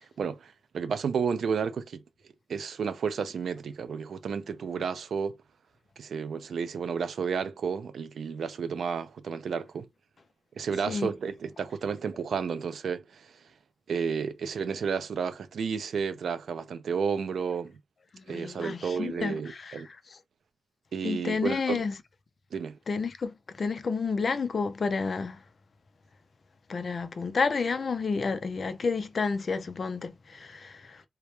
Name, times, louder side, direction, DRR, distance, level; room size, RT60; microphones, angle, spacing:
voice 1, 0.2-2.0 2.5-5.4 6.0-9.9 10.6-13.3 13.9-17.8 18.3-19.9 20.9-21.8 22.5-22.8, right 6 dB, 70° right, 0.3 m, -32 dB
voice 2, 18.1-20.0 21.0-21.9 22.9-25.4 26.7-31.0, left 4 dB, 45° left, 0.4 m, -30 dB
2.2 x 2.0 x 2.9 m
wide cardioid pair, 125°, 0 cm